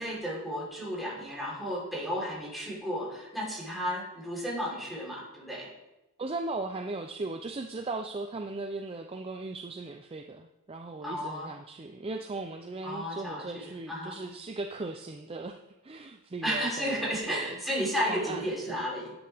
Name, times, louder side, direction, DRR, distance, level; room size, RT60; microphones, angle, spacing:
voice 1, 0.0-5.7 11.0-11.5 12.8-14.2 16.4-19.1, equal, ahead, -6 dB, 3.6 m, -33 dB
voice 2, 6.2-15.6 15.8-17.6 18.1-18.8, right 3 dB, 25° right, 5 dB, 0.5 m, -38 dB
11.0 x 9.6 x 3.5 m, 0.96 s
head